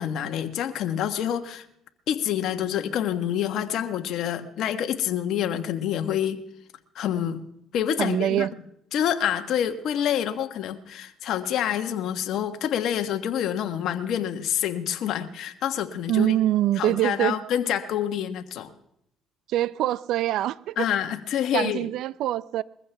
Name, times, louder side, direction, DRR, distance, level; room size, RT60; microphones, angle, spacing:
voice 1, 0.0-1.6 2.1-6.4 6.9-7.4 7.7-8.5 8.9-16.3 16.8-18.7 20.8-21.9, left 10 dB, 70° left, 7 dB, 1.4 m, -27 dB
voice 2, 8.0-8.5 16.1-17.4 19.5-20.9 21.5-22.6, right 13 dB, 75° right, 19 dB, 0.5 m, -24 dB
21.5 x 15.0 x 3.5 m, 0.77 s
supercardioid pair, 75°, 0 cm